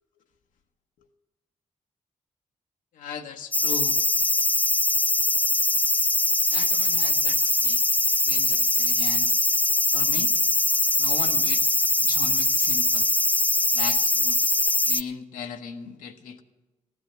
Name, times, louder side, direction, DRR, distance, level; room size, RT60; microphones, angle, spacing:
voice 1, 2.9-4.0 6.5-7.8 8.2-9.4 9.9-10.3 11.0-13.1 13.7-14.6 14.8-16.4, left 6 dB, 85° left, 5 dB, 0.9 m, -38 dB
sound 1, 3.5-15.0, left 2 dB, 10° left, 0.4 m, -22 dB
14.5 x 9.6 x 6.7 m, 1.1 s
supercardioid pair, 50°, 13 cm